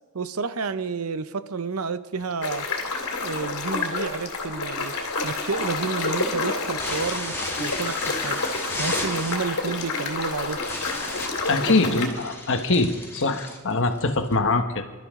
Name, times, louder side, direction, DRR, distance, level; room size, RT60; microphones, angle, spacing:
voice 1, 0.1-2.7 3.2-4.9 5.2-8.4 8.8-10.6 11.7-12.0, right 4 dB, 75° right, 12 dB, 0.8 m, -30 dB
sound 1, 2.4-12.1, left 3 dB, 85° left, 2.5 m, -29 dB
sound 2, 4.8-14.4, left 1 dB, 10° left, 2.5 m, -35 dB
voice 2, 11.5-14.8, left 3 dB, 60° left, 7 dB, 1.3 m, -23 dB
26.0 x 12.5 x 3.7 m, 1.3 s
head